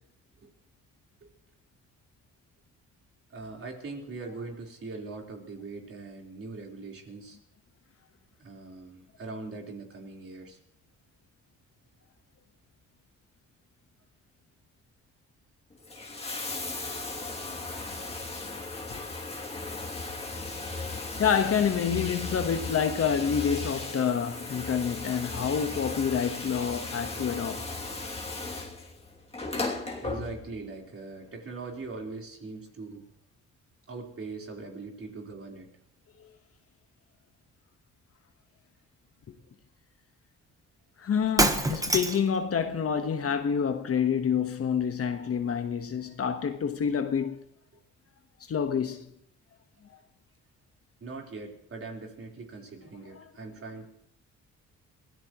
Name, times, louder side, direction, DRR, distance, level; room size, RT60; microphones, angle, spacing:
voice 1, 3.3-7.4 8.4-10.6 30.0-33.1 33.9-35.7 43.0-43.1 51.0-53.9, right 3 dB, 45° right, 4.2 m, -41 dB
Bathtub (filling or washing), 15.7-30.7 31.8-31.9, left 3 dB, 20° left, 2.8 m, -36 dB
voice 2, 21.2-27.6 39.3-39.4 41.0-47.4 48.5-49.1 53.2-53.3, left 7 dB, 50° left, 1.4 m, -28 dB
Shatter, 41.2-42.4, right 2 dB, 10° right, 1.2 m, -25 dB
23.5 x 17.0 x 3.1 m
cardioid pair, 90°, 30 cm